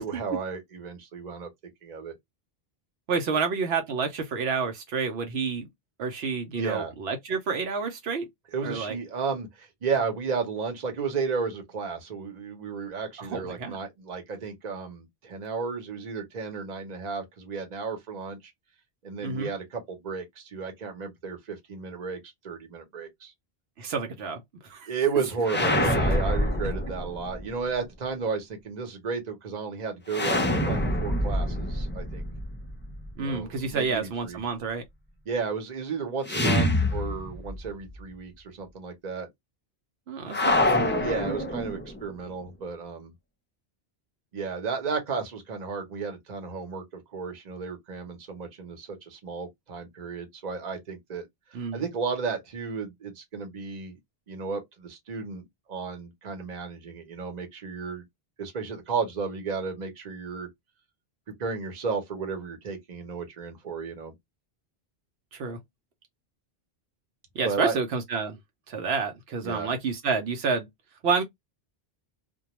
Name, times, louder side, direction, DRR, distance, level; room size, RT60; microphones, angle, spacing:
voice 1, 0.0-1.5 1.8-2.2 6.6-6.9 8.5-18.5 19.0-23.3 24.9-32.2 33.2-34.4 35.3-39.3 41.0-43.1 44.3-54.0 54.3-55.4 55.7-58.0 58.4-60.5 61.4-64.1 67.4-67.7 69.4-69.7, right 5 dB, 45° right, 0.8 m, -33 dB
voice 2, 3.1-5.7 6.0-8.3 8.6-9.0 13.2-13.8 19.2-19.5 23.8-24.9 33.2-34.8 40.1-40.9 51.5-51.8 65.3-65.6 67.3-68.4 68.7-70.7 71.0-71.2, right 5 dB, 80° right, 0.9 m, -29 dB
sound 1, 25.4-27.4 30.1-33.1 36.2-37.7 37.9-38.0 40.3-42.1, left 1 dB, 15° left, 0.4 m, -26 dB
2.2 x 2.2 x 2.9 m
omnidirectional pair, 1.0 m